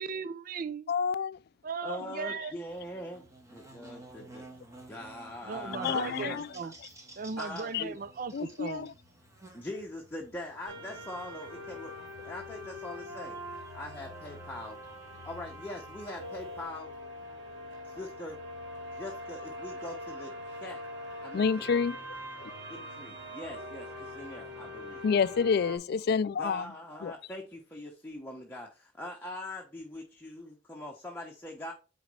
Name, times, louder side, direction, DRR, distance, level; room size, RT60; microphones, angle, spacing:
voice 1, 0.0-0.9 1.6-2.5 5.4-6.7 7.2-8.9, right 5 dB, 50° right, 0.4 m, -37 dB
voice 2, 0.9-1.4 1.8-1.9 5.8-6.5 7.7-7.8 8.3-8.9 21.3-22.0 22.4-22.5 25.0-26.6 27.0-27.1, left 6 dB, 60° left, 0.3 m, -28 dB
voice 3, 1.8-3.2 3.5-4.4 4.9-6.7 7.4-8.0 9.5-11.9 12.2-13.4 13.7-14.8 15.2-16.9 17.8-18.4 18.9-20.8 21.2-21.8 22.7-25.1 26.4-31.7, left 1 dB, 10° left, 1.0 m, -42 dB
Buzz, 2.7-16.6, right 2 dB, 15° right, 1.4 m, -52 dB
sound 1, 10.7-25.8, left 1 dB, 75° right, 2.8 m, -43 dB
8.9 x 4.0 x 3.2 m
head